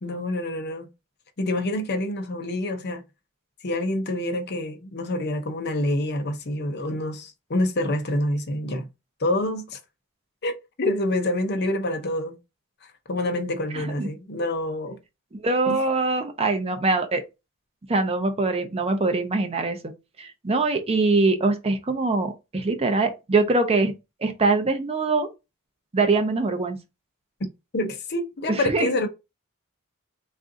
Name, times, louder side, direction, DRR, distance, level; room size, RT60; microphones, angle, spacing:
voice 1, 0.0-0.9 1.4-3.0 3.6-8.9 9.2-9.8 10.4-12.4 13.1-15.0 15.7-15.8 27.7-29.1, left 1 dB, 50° left, 0.7 m, -27 dB
voice 2, 13.7-14.1 15.3-17.2 17.9-19.8 20.2-23.9 24.2-25.3 25.9-26.8 28.5-28.9, right 3 dB, 30° right, 0.5 m, -23 dB
3.6 x 2.5 x 3.7 m
head